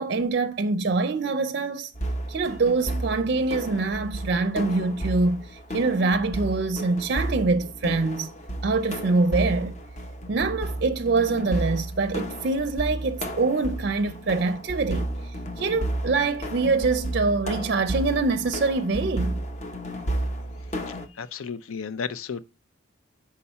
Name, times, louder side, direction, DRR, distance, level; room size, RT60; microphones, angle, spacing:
voice 1, 0.0-1.9 2.3-8.3 8.6-9.8 10.3-15.1 15.6-19.4, right 3 dB, 50° right, 0.4 m, -24 dB
sound 1, 1.9-21.1, right 1 dB, 35° left, 0.7 m, -32 dB
voice 2, 20.9-22.4, left 6 dB, 90° left, 0.5 m, -34 dB
5.4 x 4.7 x 5.6 m
head